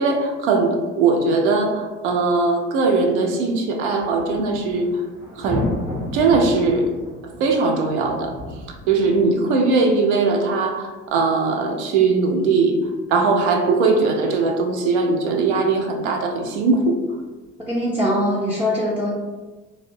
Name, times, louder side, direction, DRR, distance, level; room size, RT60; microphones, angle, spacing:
voice 1, 0.0-4.9 5.4-5.7 6.1-6.9 7.4-8.3 8.9-12.8 13.1-17.0, right 4 dB, 70° right, 3 dB, 0.5 m, -20 dB
sound 1, 4.0-9.4 9.6-9.7 10.3-10.4 17.3-17.4, left 1 dB, 90° right, 0.8 m, -32 dB
voice 2, 17.7-19.1, equal, 5° right, -5 dB, 0.4 m, -22 dB
2.5 x 2.1 x 2.6 m, 1.3 s
figure-of-eight pair, 50°, 35 cm